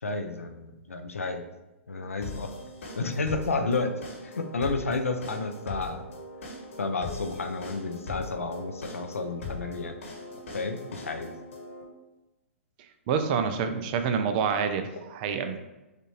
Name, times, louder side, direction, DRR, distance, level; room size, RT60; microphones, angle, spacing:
voice 1, 0.0-1.5 1.9-2.5 3.0-3.9 4.2-6.0 6.8-9.9 10.5-11.3, left 3 dB, 90° left, 6 dB, 0.6 m, -31 dB
sound 1, 2.2-11.8, left 2 dB, 75° left, 1.3 m, -40 dB
voice 2, 13.1-15.6, right 6 dB, 40° right, 8 dB, 0.5 m, -27 dB
6.5 x 2.5 x 3.2 m, 1.0 s
hypercardioid pair, 125°, 7 cm